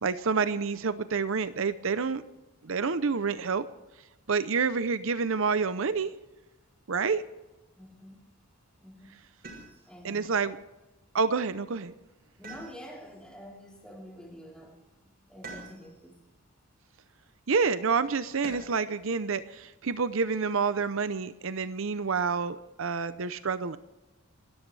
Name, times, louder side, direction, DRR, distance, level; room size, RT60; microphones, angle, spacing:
voice 1, 0.0-2.2 2.6-3.6 4.3-6.1 6.9-7.2 10.0-10.6 11.1-11.9 17.5-23.8, right 5 dB, 65° right, 13 dB, 0.6 m, -28 dB
voice 2, 7.8-8.3 8.8-9.2 9.5-10.4 12.4-16.2, equal, 5° left, -2 dB, 3.9 m, -48 dB
sound 1, 9.4-10.1 12.4-13.2 15.4-16.1 18.4-19.0 20.6-21.3, right 3 dB, 45° right, 6.7 m, -46 dB
27.5 x 13.5 x 3.3 m, 1.1 s
head